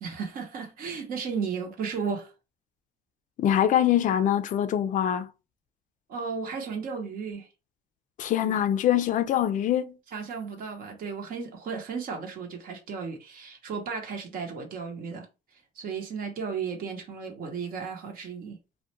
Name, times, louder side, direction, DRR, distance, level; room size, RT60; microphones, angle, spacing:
voice 1, 0.0-2.3 6.1-7.5 8.4-8.6 10.1-15.3 15.8-18.6, right 5 dB, 55° right, 0.8 m, -34 dB
voice 2, 3.4-5.3 8.2-10.0, left 10 dB, 50° left, 0.4 m, -24 dB
2.4 x 2.1 x 2.8 m
cardioid pair, 110°, 17 cm